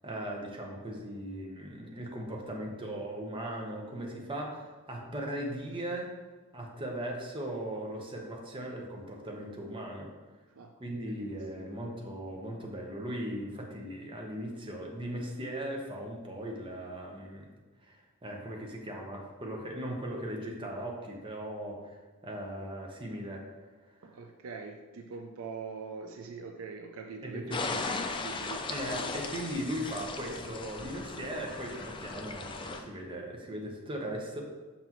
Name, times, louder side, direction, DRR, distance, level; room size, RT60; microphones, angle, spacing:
voice 1, 0.0-6.1 6.5-10.1 10.8-17.5 17.8-23.5 24.0-24.1 27.2-27.8 28.7-34.4, right 1 dB, 20° right, 0 dB, 0.8 m, -38 dB
voice 2, 11.1-11.8 24.0-29.3, right 5 dB, 65° right, 4 dB, 0.4 m, -44 dB
sound 1, 27.5-32.8, left 3 dB, 20° left, 0.4 m, -37 dB
5.8 x 5.7 x 3.0 m, 1.3 s
head